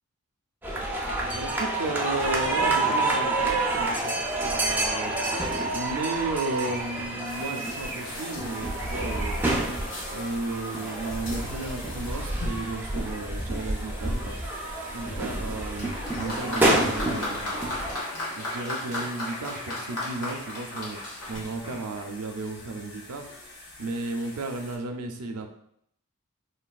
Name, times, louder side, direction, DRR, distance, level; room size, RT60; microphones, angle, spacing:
sound 1, 0.6-18.0, right 2 dB, 10° right, 0.3 m, -28 dB
voice 1, 1.3-9.6 10.1-17.5 18.3-25.5, right 2 dB, 85° right, 5 dB, 0.4 m, -34 dB
sound 2, 7.3-24.8, left 2 dB, 55° left, 0.7 m, -44 dB
Applause, 15.8-22.2 23.1-23.2, left 1 dB, 85° left, 1.1 m, -35 dB
3.2 x 2.2 x 2.3 m, 0.70 s
head